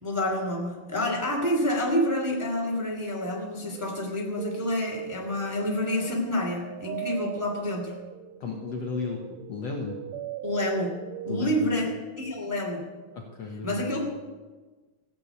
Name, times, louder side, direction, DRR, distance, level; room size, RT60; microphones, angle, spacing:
voice 1, 0.0-7.9 10.4-10.9 11.2-11.9 12.2-12.9 13.6-14.0, left 1 dB, 5° right, -1 dB, 2.0 m, -28 dB
sound 1, 3.7-12.0, right 12 dB, 90° right, 2.5 m, -40 dB
voice 2, 8.4-9.2 9.5-10.0 11.3-11.7 13.1-13.9, left 4 dB, 60° left, 1 dB, 2.0 m, -34 dB
16.0 x 8.9 x 8.3 m, 1.3 s
omnidirectional pair, 4.2 m